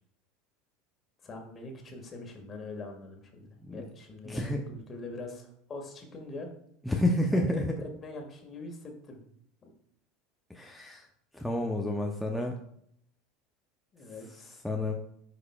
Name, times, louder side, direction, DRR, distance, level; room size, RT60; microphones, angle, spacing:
voice 1, 1.2-6.5 7.3-9.2 9.6-9.7 13.9-14.6, left 2 dB, 30° left, 3 dB, 1.8 m, -43 dB
voice 2, 4.3-4.6 6.9-7.7 10.5-11.1 11.3-12.6 14.6-14.9, left 1 dB, 5° left, 0 dB, 0.7 m, -29 dB
9.3 x 5.0 x 2.4 m, 0.70 s
hypercardioid pair, 75°, 0 cm